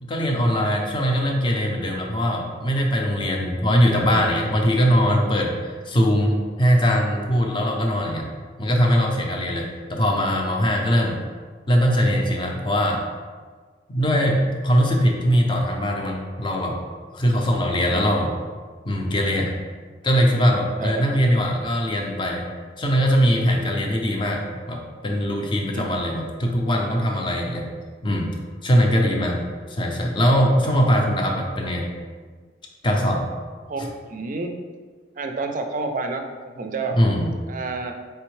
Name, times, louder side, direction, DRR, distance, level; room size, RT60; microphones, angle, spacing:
voice 1, 0.0-8.3 8.6-11.2 11.7-13.0 13.9-16.8 17.1-18.3 18.8-19.5 20.0-22.5 22.8-27.7 28.0-28.3 28.6-29.4 29.7-31.9 32.8-33.2 37.0-37.3, equal, 25° left, 1 dB, 0.5 m, -21 dB
voice 2, 17.9-18.2 20.8-21.1 23.6-23.8 25.7-25.9 28.9-29.1 30.6-30.7 33.7-34.5 35.2-37.0 37.5-37.9, right 3 dB, 45° right, 5 dB, 0.4 m, -30 dB
4.3 x 3.4 x 3.1 m, 1.5 s
head